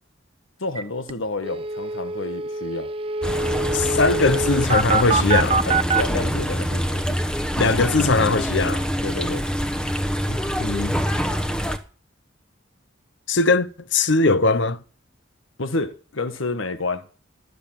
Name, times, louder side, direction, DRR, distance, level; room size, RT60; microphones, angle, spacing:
voice 1, 0.6-2.9 5.6-7.2 9.0-9.4 15.6-17.1, left 2 dB, 80° left, 1.5 m, -29 dB
sound 1, 0.8-0.9 1.1-1.2 1.4-6.0, right 4 dB, 25° right, 0.5 m, -24 dB
sound 2, 3.2-11.8, equal, 5° left, 1.0 m, -25 dB
voice 2, 3.7-5.6 7.6-8.9 10.3-11.0 13.3-14.8, left 3 dB, 65° left, 0.9 m, -20 dB
13.5 x 7.0 x 8.8 m
head